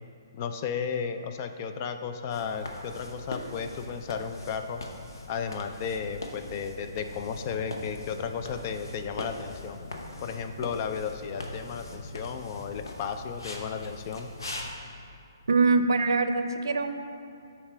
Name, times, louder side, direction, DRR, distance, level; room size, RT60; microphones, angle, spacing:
voice 1, 0.3-4.8 5.3-9.8 10.2-14.3, left 6 dB, 35° left, 8 dB, 0.4 m, -34 dB
sound 1, 2.3-14.7, left 2 dB, 90° left, 0.9 m, -41 dB
voice 2, 15.5-17.0, right 3 dB, 80° right, 8 dB, 0.5 m, -23 dB
7.0 x 4.5 x 5.0 m, 2.5 s
hypercardioid pair, 150°, 2 cm